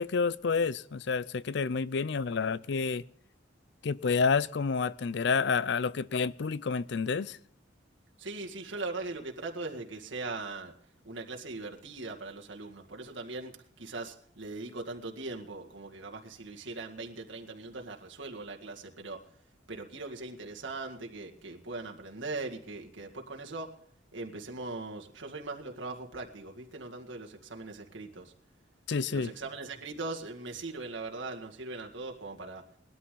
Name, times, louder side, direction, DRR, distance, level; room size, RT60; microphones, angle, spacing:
voice 1, 0.0-3.0 3.8-7.4 28.9-29.3, left 5 dB, 60° left, 0.5 m, -29 dB
voice 2, 8.2-10.7 11.0-19.2 19.7-23.8 24.1-28.3 29.1-32.6, right 3 dB, 75° right, 2.0 m, -40 dB
20.0 x 12.5 x 3.9 m
head